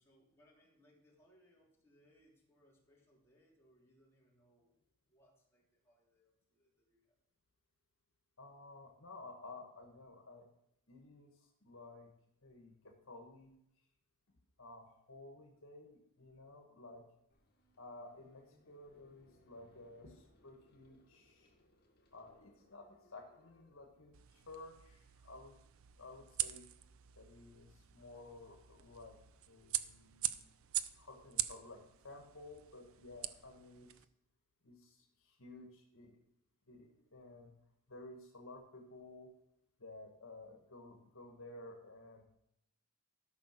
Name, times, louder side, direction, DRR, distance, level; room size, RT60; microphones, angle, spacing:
voice 1, 0.0-4.7 5.0-7.2, equal, 10° left, -4 dB, 2.8 m, -70 dB
voice 2, 8.4-10.5 10.9-11.3 11.6-12.1 12.4-13.5 14.6-17.0 17.8-21.5 22.1-25.5 26.0-26.6 27.2-29.2 29.5-30.5 31.0-33.9 34.6-35.0 35.2-36.2 36.7-37.5 37.9-39.3 39.8-42.2, left 2 dB, 65° left, 2 dB, 1.7 m, -54 dB
sound 1, 17.3-24.5, left 1 dB, 50° left, 2.1 m, -70 dB
sound 2, 24.1-34.1, right 13 dB, 65° right, 0.5 m, -44 dB
13.0 x 6.0 x 6.0 m, 0.77 s
head